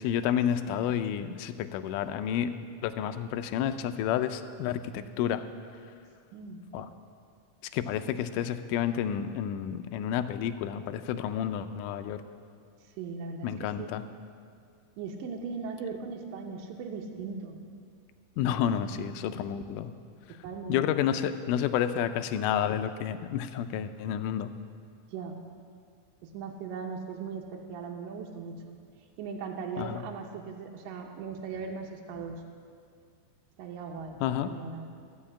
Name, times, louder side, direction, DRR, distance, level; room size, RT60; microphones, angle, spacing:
voice 1, 0.0-2.6 2.8-5.4 6.7-6.9 7.7-12.2 13.4-14.0 18.4-19.9 20.7-24.5 29.8-30.0 34.2-34.5, left 9 dB, 80° left, 10 dB, 1.9 m, -30 dB
voice 2, 6.3-6.6 13.0-13.9 15.0-17.6 18.7-19.1 20.4-21.0 25.1-25.4 26.2-28.8 29.2-32.4 33.6-34.9, right 5 dB, 75° right, 1 dB, 2.5 m, -39 dB
14.0 x 5.6 x 8.6 m, 2.2 s
omnidirectional pair, 4.0 m